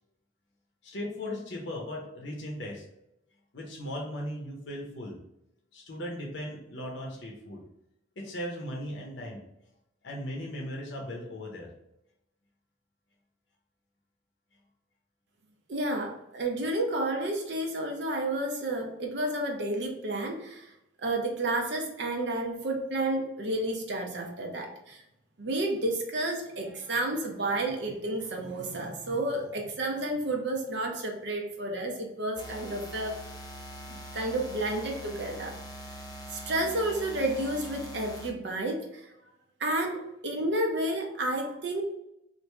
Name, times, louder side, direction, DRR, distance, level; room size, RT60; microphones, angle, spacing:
voice 1, 0.8-2.8 3.5-5.2 5.7-7.6 8.2-9.4 10.0-11.7, left 1 dB, 60° left, -1 dB, 0.7 m, -37 dB
voice 2, 15.7-20.7 21.0-25.0 25.4-33.2 33.9-35.5 36.3-39.1 39.6-41.8, right 1 dB, 55° right, 1 dB, 0.6 m, -31 dB
sound 1, 32.4-38.3, equal, 20° left, 0.4 m, -43 dB
3.0 x 2.5 x 3.4 m, 0.84 s
head